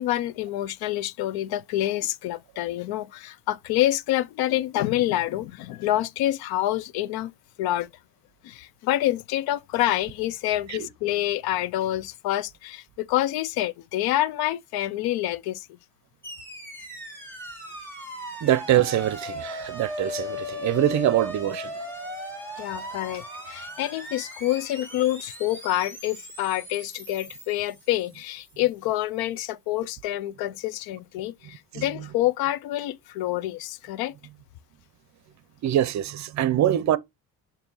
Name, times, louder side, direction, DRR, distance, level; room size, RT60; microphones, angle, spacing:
voice 1, 0.0-7.3 7.6-7.9 8.4-15.7 22.6-34.1, left 14 dB, 85° left, 0.6 m, -27 dB
sound 1, 16.2-28.5, left 1 dB, 5° left, 2.7 m, -38 dB
voice 2, 18.4-21.7 31.7-31.8 35.6-37.0, right 12 dB, 50° right, 0.7 m, -24 dB
7.1 x 2.7 x 5.4 m
cardioid pair, 140°, 36 cm